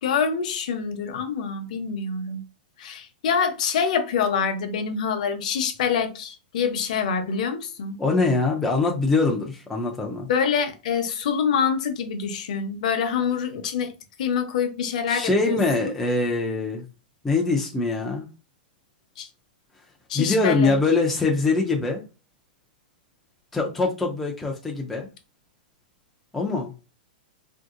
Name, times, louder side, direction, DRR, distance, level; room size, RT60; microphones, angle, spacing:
voice 1, 0.0-2.4 2.8-7.9 10.3-13.9 14.2-15.6 15.8-15.9 19.2-19.3 20.1-20.7, left 6 dB, 50° left, 0.6 m, -25 dB
voice 2, 8.0-10.3 15.1-16.9 17.2-18.3 20.1-22.0 23.5-25.1 26.3-26.7, left 3 dB, 5° left, 0.3 m, -23 dB
3.5 x 2.6 x 2.4 m
supercardioid pair, 170°, 5 cm